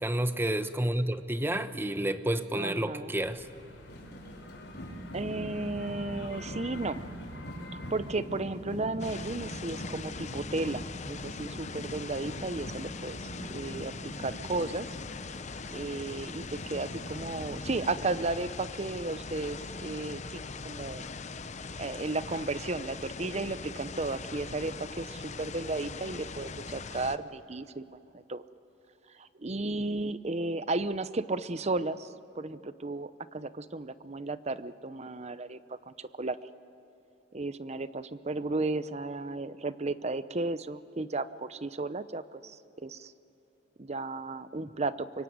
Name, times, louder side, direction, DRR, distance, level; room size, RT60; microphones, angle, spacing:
voice 1, 0.0-3.5, right 1 dB, 10° right, 10 dB, 1.0 m, -30 dB
voice 2, 2.5-3.1 5.1-7.1 7.9-13.9 14.2-14.9 15.7-21.0 21.8-27.8 28.1-28.4 29.1-36.4 37.3-43.1 43.8-45.2, right 2 dB, 35° right, 14 dB, 0.8 m, -34 dB
sound 1, 3.1-8.2, left 2 dB, 75° left, 3.9 m, -48 dB
sound 2, 3.9-18.0, equal, 60° left, 4.9 m, -43 dB
sound 3, 9.0-27.2, left 4 dB, 40° left, 0.8 m, -41 dB
25.0 x 23.0 x 9.6 m, 2.9 s
head